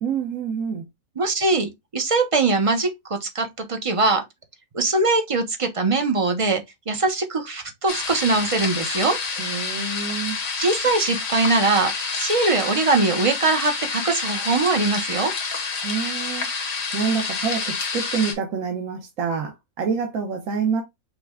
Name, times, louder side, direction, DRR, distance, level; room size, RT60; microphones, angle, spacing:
voice 1, 0.0-0.9 9.4-10.4 15.8-16.5 16.9-20.8, right 6 dB, 70° right, 1.3 m, -27 dB
voice 2, 1.2-4.2 4.7-9.2 10.6-15.3, right 3 dB, 40° right, 0.5 m, -22 dB
sound 1, 7.9-18.3, left 4 dB, 65° left, 1.5 m, -28 dB
5.8 x 2.1 x 3.5 m
omnidirectional pair, 1.5 m